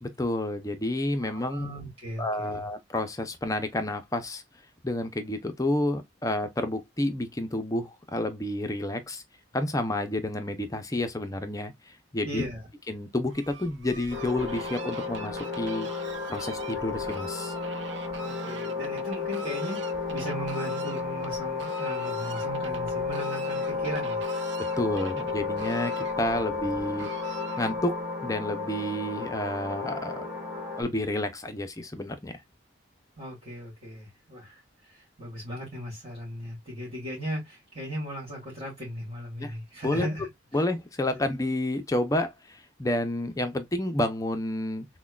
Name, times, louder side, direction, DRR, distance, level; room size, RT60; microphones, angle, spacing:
voice 1, 0.0-1.7 2.2-4.4 4.8-9.2 9.5-12.4 12.9-15.9 16.3-17.5 24.8-27.1 27.6-30.3 30.8-32.3 39.4-39.5 39.8-40.1 40.5-44.9, left 1 dB, 20° left, 0.5 m, -30 dB
voice 2, 1.2-2.7 12.2-12.6 18.2-19.8 20.1-24.2 33.2-34.6 34.9-40.3 41.1-41.2, equal, 30° right, 1.8 m, -37 dB
Fowl, 13.3-28.0, right 4 dB, 70° right, 0.7 m, -44 dB
sound 1, 14.1-30.8, left 4 dB, 5° right, 1.6 m, -33 dB
6.0 x 2.2 x 2.3 m
head